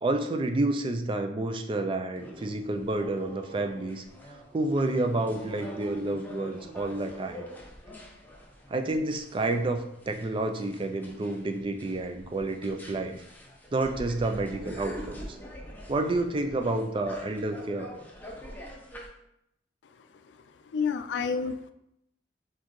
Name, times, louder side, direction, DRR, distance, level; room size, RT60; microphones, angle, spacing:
voice 1, 0.0-4.0 4.5-7.4 8.7-9.8 10.1-13.2 13.7-15.4 15.9-17.9, right 2 dB, 30° right, 6 dB, 0.4 m, -29 dB
sound 1, 2.1-19.1, equal, 10° left, 0.7 m, -45 dB
voice 2, 19.9-21.7, left 5 dB, 75° left, 9 dB, 0.3 m, -32 dB
4.3 x 3.8 x 3.0 m, 0.80 s
head